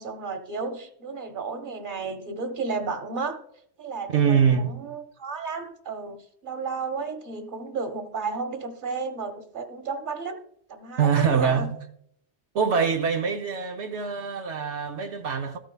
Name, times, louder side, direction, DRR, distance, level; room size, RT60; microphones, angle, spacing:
voice 1, 0.0-3.4 3.8-6.2 6.4-10.4 10.7-11.7, right 4 dB, 45° right, 1.4 m, -33 dB
voice 2, 4.1-4.8 11.0-11.8 12.5-15.6, right 6 dB, 75° right, 1.1 m, -24 dB
13.5 x 8.8 x 2.3 m
omnidirectional pair, 1.2 m